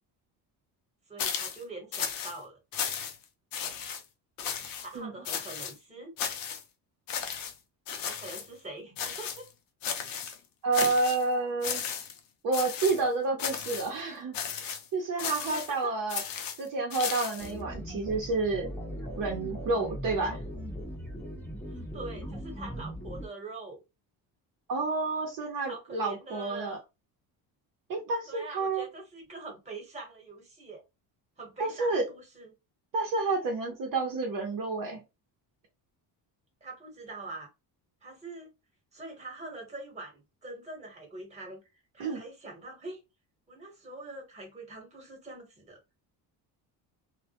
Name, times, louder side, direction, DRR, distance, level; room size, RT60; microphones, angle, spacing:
voice 1, 1.1-2.6 4.8-6.1 8.0-9.5 15.5-15.9 21.7-23.8 25.7-26.8 28.3-30.8 31.4-32.5 36.6-37.5 38.0-38.5 38.9-41.6 41.9-43.0 43.5-45.8, right 2 dB, 15° right, 1.0 m, -44 dB
sound 1, 1.2-1.6 1.9-2.4 2.7-3.2 3.5-4.0 4.4-4.9 5.2-5.7 6.2-6.6 7.1-7.5 7.9-8.5 9.0-9.5 9.8-10.4 10.7-11.2 11.6-12.2 12.5-13.0 13.4-13.9 14.3-14.8 15.2-15.7 16.1-17.5, left 7 dB, 55° left, 0.5 m, -34 dB
voice 2, 10.6-11.8 12.4-16.2 16.6-18.7 19.2-20.4 24.7-26.8 27.9-28.8 31.6-32.0 32.9-35.0 42.0-42.2, right 3 dB, 50° right, 0.7 m, -30 dB
sound 2, 17.4-23.3, equal, 5° left, 0.6 m, -39 dB
2.2 x 2.1 x 2.8 m
cardioid pair, 150°, 41 cm